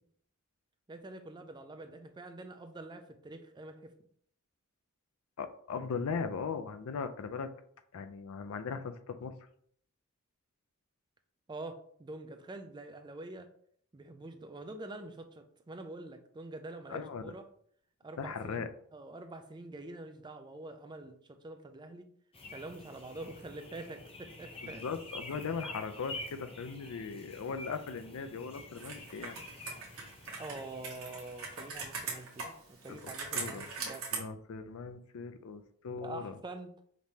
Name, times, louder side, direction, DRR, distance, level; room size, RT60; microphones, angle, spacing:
voice 1, 0.9-3.9 11.5-13.5 13.9-17.4 18.0-21.1 21.4-22.0 22.5-24.9 30.4-34.1 35.9-36.7, right 2 dB, 20° right, 7 dB, 0.4 m, -46 dB
voice 2, 5.4-7.5 7.9-9.4 16.9-17.3 18.2-18.7 24.6-29.4 32.9-33.6 34.1-36.3, left 5 dB, 75° left, 9 dB, 0.4 m, -39 dB
sound 1, 22.3-32.3, left 2 dB, 25° left, 0.7 m, -48 dB
Computer keyboard, 28.7-34.2, right 4 dB, 70° right, 1.1 m, -41 dB
5.2 x 3.1 x 2.7 m, 0.63 s
head